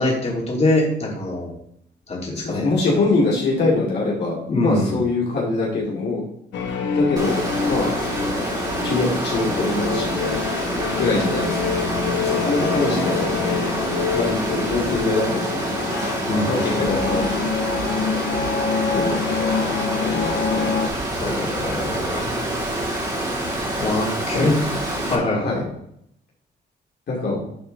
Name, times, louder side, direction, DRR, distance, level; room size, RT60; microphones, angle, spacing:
voice 1, 0.0-1.5 2.1-2.7 4.5-5.0 12.4-13.5 16.3-17.0 21.2-22.2 23.8-24.6 25.1-25.6 27.3-27.4, left 2 dB, 35° left, -3 dB, 3.1 m, -24 dB
voice 2, 2.4-6.2 6.9-7.9 8.8-10.4 10.9-11.6 12.2-13.3 14.1-15.9 16.4-17.5 18.9-19.3 20.0-20.7 24.3-24.5 25.2-25.6 27.1-27.4, left 3 dB, 65° left, -4 dB, 2.5 m, -23 dB
sound 1, 6.5-20.9, left 5 dB, 85° left, 1.1 m, -26 dB
Water, 7.2-25.2, right 1 dB, 20° right, 3.4 m, -27 dB
10.5 x 4.5 x 4.0 m, 0.73 s
cardioid pair, 80°, 18 cm